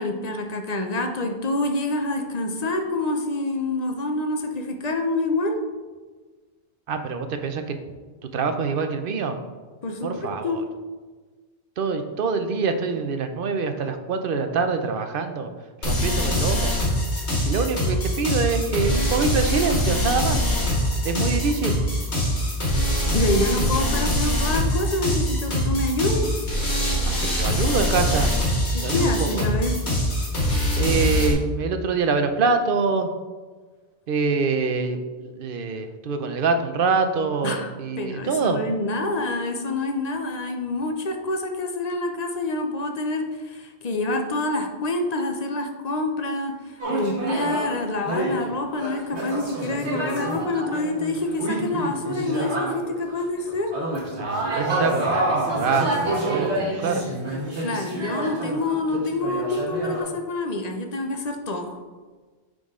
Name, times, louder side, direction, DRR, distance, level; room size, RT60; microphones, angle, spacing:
voice 1, 0.0-5.6 9.8-10.6 23.1-26.5 28.7-29.8 37.4-37.7 38.0-53.7 57.6-61.8, left 2 dB, 40° left, 4 dB, 0.8 m, -27 dB
voice 2, 6.9-7.8 8.2-9.4 10.0-10.6 11.8-15.5 15.9-16.7 17.5-20.5 21.0-21.8 27.0-28.3 28.8-29.5 30.7-33.1 34.1-38.6 54.1-57.1, right 4 dB, 60° right, 7 dB, 0.8 m, -25 dB
sound 1, 15.8-31.3, equal, 85° left, 2.2 m, -23 dB
sound 2, 46.8-47.7 48.0-53.2 53.5-60.0, right 2 dB, 80° right, 2.0 m, -27 dB
9.6 x 3.9 x 3.7 m, 1.4 s
omnidirectional pair, 1.1 m